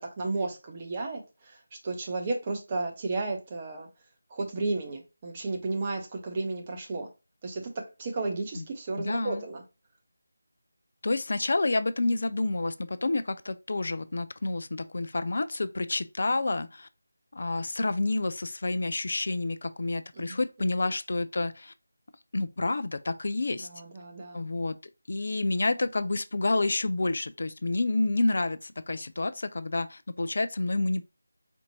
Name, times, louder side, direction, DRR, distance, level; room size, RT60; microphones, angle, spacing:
voice 1, 0.0-1.6 1.8-3.9 4.3-7.1 7.4-9.6 20.2-20.4 23.5-24.4, right 3 dB, 25° right, 0.9 m, -33 dB
voice 2, 9.0-9.4 11.0-16.9 17.3-21.7 22.3-23.7 24.3-24.8 25.1-31.0, left 2 dB, 55° left, 0.3 m, -29 dB
4.3 x 2.5 x 2.9 m
figure-of-eight pair, 165°, 0 cm